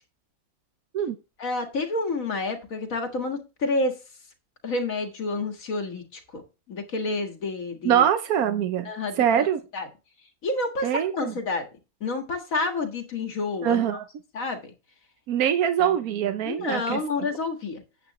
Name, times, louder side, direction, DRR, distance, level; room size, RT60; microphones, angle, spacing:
voice 1, 1.4-4.0 4.6-6.4 6.7-8.0 8.9-9.5 9.7-9.9 10.4-11.7 12.0-13.8 14.3-14.7 16.4-17.8, left 3 dB, 70° left, 5 dB, 2.1 m, -29 dB
voice 2, 7.8-8.9 9.2-9.6 10.8-11.3 13.6-14.1 15.3-17.0, right 9 dB, 90° right, 9 dB, 1.2 m, -23 dB
9.1 x 8.2 x 3.0 m, 0.30 s
omnidirectional pair, 1.5 m